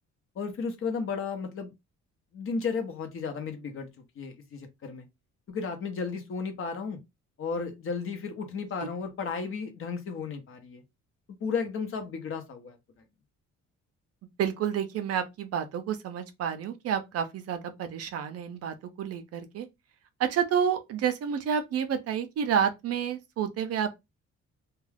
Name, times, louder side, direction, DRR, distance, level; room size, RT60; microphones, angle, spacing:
voice 1, 0.3-1.7 2.3-3.9 4.2-5.1 5.5-7.0 7.4-10.8 11.3-12.8, left 5 dB, 45° left, 0.7 m, -34 dB
voice 2, 14.4-19.7 20.2-24.0, right 8 dB, 55° right, 0.5 m, -29 dB
2.3 x 2.2 x 3.2 m
cardioid pair, 165°, 30 cm